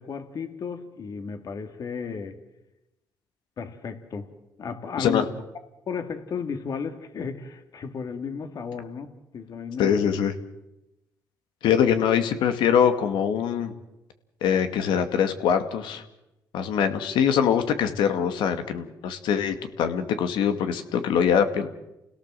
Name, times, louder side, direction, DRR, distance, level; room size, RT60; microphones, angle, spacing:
voice 1, 0.0-2.4 3.6-4.3 4.6-5.3 5.9-9.1 9.3-10.0 21.1-21.2, left 6 dB, 50° left, 8 dB, 2.6 m, -34 dB
voice 2, 9.8-10.3 11.6-13.7 14.4-16.0 16.5-21.7, left 8 dB, 90° left, 8 dB, 2.3 m, -23 dB
29.5 x 17.5 x 7.7 m, 0.95 s
cardioid pair, 115°, 8 cm